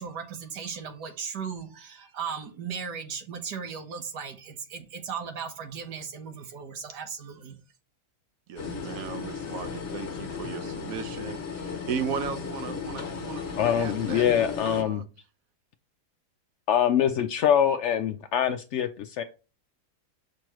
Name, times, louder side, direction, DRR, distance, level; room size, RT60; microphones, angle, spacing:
voice 1, 0.0-7.6, right 6 dB, 85° right, 1.7 m, -37 dB
voice 2, 8.5-14.3 14.7-15.0, right 6 dB, 65° right, 1.0 m, -36 dB
sound 1, 8.6-14.8, left 5 dB, 45° left, 1.4 m, -35 dB
voice 3, 13.6-15.1 16.7-19.2, left 9 dB, 75° left, 0.6 m, -24 dB
6.1 x 5.3 x 3.0 m
omnidirectional pair, 1.7 m